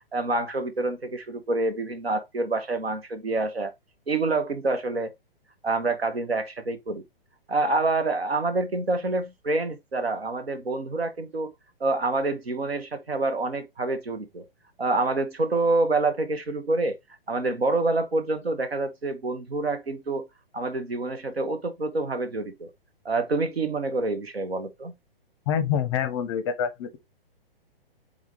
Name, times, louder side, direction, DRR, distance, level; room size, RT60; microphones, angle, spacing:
voice 1, 0.1-3.7 4.1-5.1 5.6-7.0 7.5-11.5 11.8-14.5 14.8-17.0 17.3-20.3 20.5-22.7 23.0-24.9, right 2 dB, 85° right, 1.0 m, -27 dB
voice 2, 25.5-27.0, left 8 dB, 30° left, 0.6 m, -26 dB
3.5 x 3.5 x 3.6 m
figure-of-eight pair, 120°, 30 cm